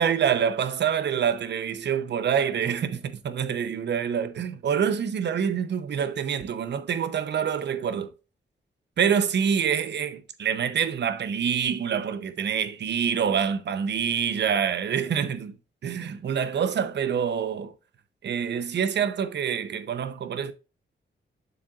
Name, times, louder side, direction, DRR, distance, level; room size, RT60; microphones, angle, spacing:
voice 1, 0.0-8.1 9.0-15.6 15.8-17.7 18.2-20.5, right 7 dB, 70° right, 0.8 m, -26 dB
7.6 x 7.0 x 2.5 m
wide cardioid pair, 125°, 19 cm